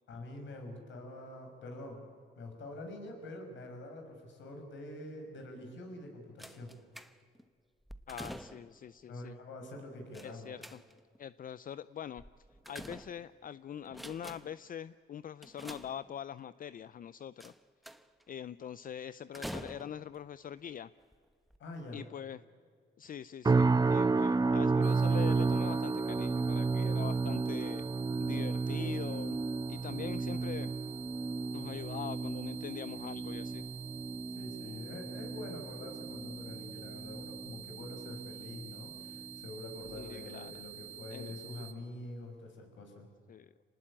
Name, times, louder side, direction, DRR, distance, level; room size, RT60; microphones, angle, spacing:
voice 1, 0.1-2.0 2.4-6.7 9.0-10.5 21.6-22.0 34.3-43.1, left 2 dB, 70° left, 4 dB, 6.2 m, -46 dB
sound 1, 6.4-7.4 7.9-8.8 10.1-11.2 12.2-13.5 13.9-14.7 15.4-16.4 17.4-18.2 19.3-20.2 21.0-21.1 21.5-21.6, equal, ahead, 1.1 m, -47 dB
voice 2, 8.1-9.4 10.2-10.8 11.2-17.5 18.3-20.9 21.9-22.4 23.0-27.8 28.2-29.4 29.7-30.7 31.5-33.6 39.9-40.6 41.1-41.4 43.3-43.5, left 9 dB, 45° left, 16 dB, 0.5 m, -43 dB
sound 2, 23.4-38.7 39.0-39.4 39.9-40.1, right 4 dB, 20° right, 0.7 m, -32 dB
sound 3, 24.8-41.7, right 11 dB, 70° right, 1.7 m, -49 dB
26.0 x 19.5 x 8.8 m, 2.1 s
cardioid pair, 90°, 20 cm